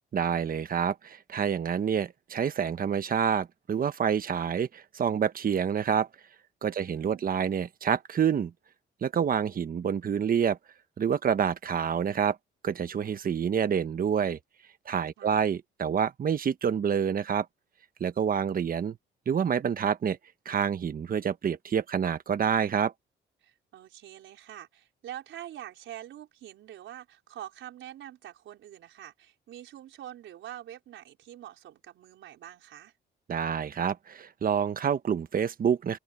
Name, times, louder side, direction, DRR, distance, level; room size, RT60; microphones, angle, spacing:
voice 1, 0.1-6.1 6.6-8.5 9.0-10.6 11.0-12.4 12.6-14.4 14.9-17.5 18.0-19.0 19.3-20.2 20.4-22.9 33.3-36.0, right 7 dB, 45° right, 1.2 m, -27 dB
voice 2, 6.8-7.5 15.2-15.5 23.4-32.9, right 12 dB, 80° right, 4.8 m, -45 dB
open air
cardioid pair, 90°, 20 cm